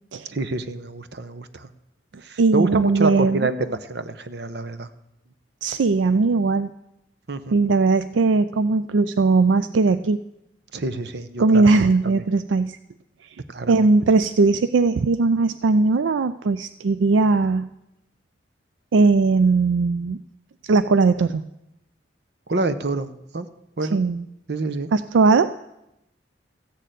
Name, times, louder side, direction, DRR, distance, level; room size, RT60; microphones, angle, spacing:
voice 1, 0.3-1.7 2.2-4.9 7.3-7.6 10.7-11.7 12.0-12.2 13.5-13.9 22.5-23.1 23.3-23.5 23.8-24.0 24.5-24.9, right 3 dB, 60° right, 11 dB, 0.8 m, -27 dB
voice 2, 2.4-3.5 5.6-6.7 7.5-10.2 11.4-12.8 13.7-17.7 18.9-20.2 20.6-21.4 23.9-24.2 24.9-25.5, right 3 dB, 80° right, 13 dB, 0.4 m, -19 dB
14.5 x 6.6 x 9.1 m, 0.88 s
head